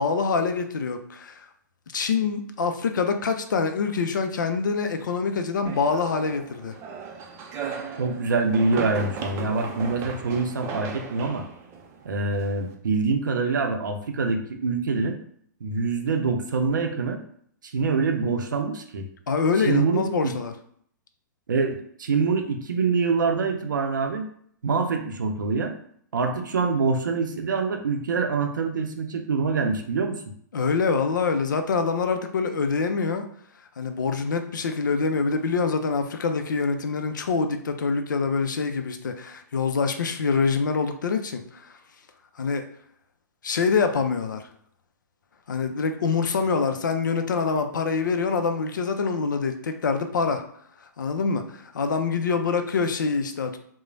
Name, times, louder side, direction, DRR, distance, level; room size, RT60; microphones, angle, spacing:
voice 1, 0.0-1.5 1.9-6.8 19.3-20.5 30.5-33.3 33.8-41.8 42.4-42.6 43.4-44.5 45.5-50.4 51.0-53.6, left 5 dB, 80° left, 7 dB, 0.4 m, -25 dB
sound 1, 5.6-12.7, right 5 dB, 25° right, 0.4 m, -36 dB
voice 2, 8.0-11.5 12.0-15.2 15.6-17.2 17.6-19.0 19.6-20.3 21.5-24.3 24.6-25.7 26.1-30.2, right 4 dB, 80° right, 4 dB, 0.5 m, -25 dB
3.0 x 2.1 x 2.6 m, 0.63 s
hypercardioid pair, 120°, 10 cm